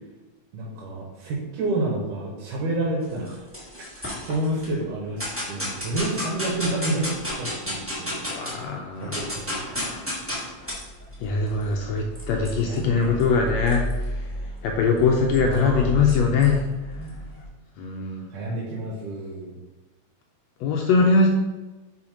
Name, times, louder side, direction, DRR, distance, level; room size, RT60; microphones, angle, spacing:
voice 1, 0.5-3.5 3.9-8.1 8.4-8.6 9.0-9.9 12.6-13.2 15.4-16.0 18.3-19.6, right 2 dB, 80° right, -4 dB, 2.7 m, -29 dB
sound 1, 3.0-4.7 5.2-8.6 8.9-17.4, equal, 15° right, 0.4 m, -32 dB
voice 2, 8.2-9.2 11.2-14.2 14.6-16.6 17.8-18.3 20.6-21.3, left 4 dB, 80° left, 1 dB, 1.6 m, -22 dB
5.9 x 4.2 x 5.0 m, 1.1 s
omnidirectional pair, 3.6 m